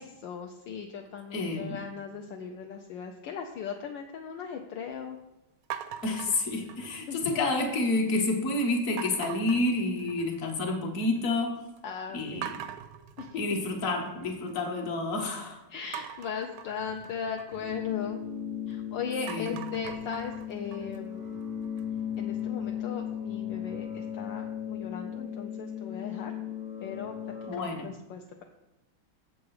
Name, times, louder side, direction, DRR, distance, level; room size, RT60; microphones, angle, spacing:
voice 1, 0.0-5.2 7.1-7.4 11.8-12.4 13.2-13.4 15.7-18.2 18.7-21.3 22.2-26.3 26.8-27.1 27.6-28.4, left 6 dB, 70° left, 2 dB, 1.3 m, -38 dB
voice 2, 1.3-1.8 6.0-11.6 12.1-12.6 13.3-15.6 19.3-19.5 27.5-27.9, left 2 dB, 45° left, 2 dB, 1.5 m, -29 dB
sound 1, 5.7-7.2 7.6-8.1 9.0-10.5 10.8-11.4 11.8-11.9 12.4-14.5 15.9-18.7 19.1-22.0, right 9 dB, 90° right, 1.4 m, -43 dB
sound 2, 17.6-27.6, left 9 dB, 35° right, 0.6 m, -36 dB
7.5 x 7.1 x 4.7 m, 0.95 s
omnidirectional pair, 2.2 m